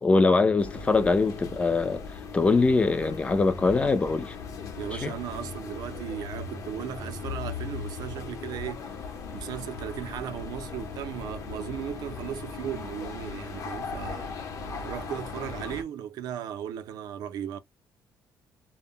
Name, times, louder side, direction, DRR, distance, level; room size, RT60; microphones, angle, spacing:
voice 1, 0.0-4.4 4.9-5.1, left 3 dB, 15° left, 0.3 m, -23 dB
sound 1, 0.6-15.8, left 4 dB, 50° left, 0.7 m, -38 dB
voice 2, 4.8-8.9 9.3-14.3 14.8-17.6, right 10 dB, 65° right, 0.4 m, -36 dB
2.1 x 2.1 x 3.6 m
cardioid pair, 155°, 7 cm